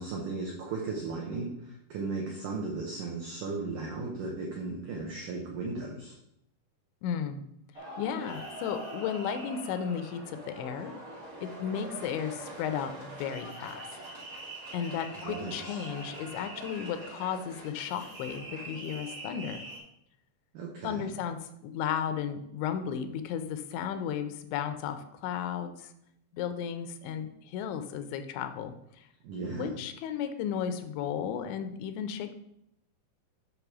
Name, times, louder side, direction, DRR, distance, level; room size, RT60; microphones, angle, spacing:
voice 1, 0.0-6.2 15.2-15.9 20.5-21.1 29.2-29.7, right 3 dB, 85° right, -1 dB, 1.8 m, -36 dB
voice 2, 7.0-7.4 8.0-10.9 11.4-13.8 14.7-19.6 20.8-25.9 26.3-29.1 29.4-32.4, left 8 dB, 85° left, 8 dB, 3.0 m, -34 dB
sound 1, 7.7-19.8, right 1 dB, 35° right, 1.5 m, -43 dB
8.8 x 3.4 x 6.0 m, 0.77 s
omnidirectional pair, 5.1 m